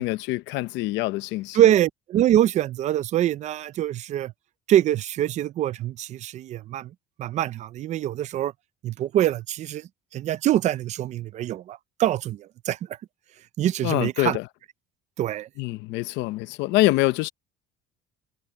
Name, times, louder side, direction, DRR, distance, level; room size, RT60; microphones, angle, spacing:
voice 1, 0.0-1.6 13.8-14.5 15.6-17.3, left 19 dB, 75° left, 0.7 m, -25 dB
voice 2, 1.5-4.3 4.7-6.9 7.2-8.5 8.8-9.8 10.1-12.8 13.6-14.4 15.2-15.5, right 12 dB, 40° right, 0.5 m, -24 dB
cardioid pair, 170°, 19 cm